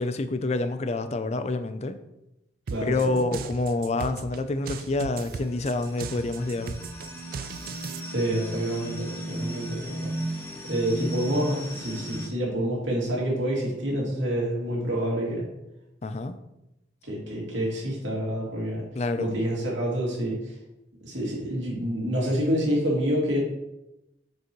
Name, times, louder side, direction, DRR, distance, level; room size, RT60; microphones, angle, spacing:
voice 1, 0.0-2.0 2.8-6.8 16.0-16.4 19.0-19.3, left 2 dB, 35° left, 10 dB, 0.4 m, -27 dB
sound 1, 2.7-8.0, right 5 dB, 50° right, 0.3 m, -37 dB
voice 2, 2.7-3.2 8.0-10.1 10.6-15.4 17.0-18.8 19.2-20.4 21.0-23.4, equal, 85° right, -3 dB, 2.5 m, -27 dB
sound 2, 3.9-12.3, right 1 dB, 15° left, 1.1 m, -36 dB
6.8 x 6.4 x 3.0 m, 0.90 s
head